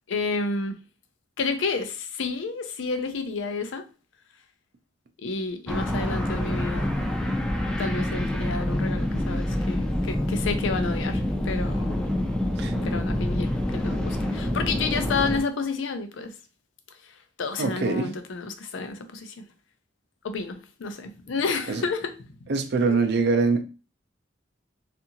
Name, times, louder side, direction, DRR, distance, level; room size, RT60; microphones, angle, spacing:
voice 1, 0.1-0.8 1.4-3.8 5.2-6.9 7.8-12.0 12.8-16.4 17.0-19.4 20.2-22.1 22.4-22.5 22.9-23.0, left 4 dB, 75° left, 0.5 m, -30 dB
sound 1, 5.7-15.4, left 1 dB, 5° left, 0.4 m, -27 dB
voice 2, 17.6-18.1 21.7-21.8 22.5-23.6, right 4 dB, 60° right, 0.4 m, -23 dB
2.7 x 2.5 x 2.8 m
head